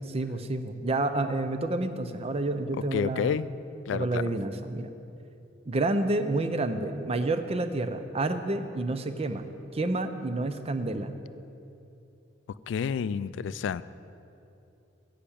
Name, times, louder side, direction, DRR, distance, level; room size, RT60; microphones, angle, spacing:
voice 1, 0.1-3.4 3.9-4.9 5.7-11.1, right 2 dB, 35° right, 9 dB, 0.5 m, -29 dB
voice 2, 2.9-3.6 3.9-4.3 12.7-13.8, left 7 dB, 70° left, 16 dB, 0.3 m, -29 dB
10.0 x 5.9 x 8.5 m, 2.8 s
head